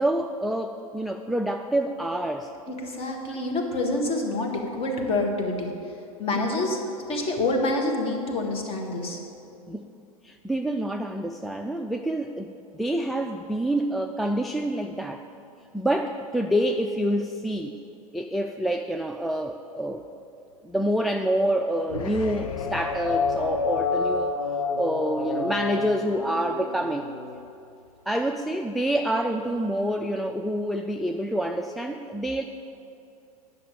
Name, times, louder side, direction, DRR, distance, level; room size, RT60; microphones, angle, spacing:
voice 1, 0.0-2.5 6.4-6.6 9.7-9.9 10.2-15.2 15.7-17.8 18.1-20.1 20.6-24.4 24.7-27.1 28.1-32.4, right 1 dB, ahead, 4 dB, 0.3 m, -27 dB
voice 2, 2.7-5.7 6.2-6.8 7.1-9.2, left 2 dB, 30° left, 1 dB, 1.8 m, -27 dB
sound 1, 21.9-27.4, left 5 dB, 65° left, 0.9 m, -29 dB
10.5 x 6.2 x 8.3 m, 2.7 s
figure-of-eight pair, 85°, 19 cm